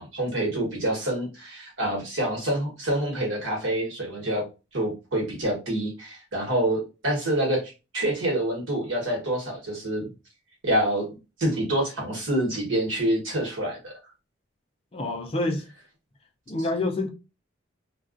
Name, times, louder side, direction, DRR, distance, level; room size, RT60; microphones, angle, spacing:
voice 1, 0.0-4.4 4.7-10.1 10.6-11.1 11.4-13.9, right 1 dB, 85° right, 1.2 m, -27 dB
voice 2, 14.9-15.6 16.5-17.1, left 2 dB, 30° left, 0.4 m, -27 dB
2.3 x 2.2 x 2.4 m
head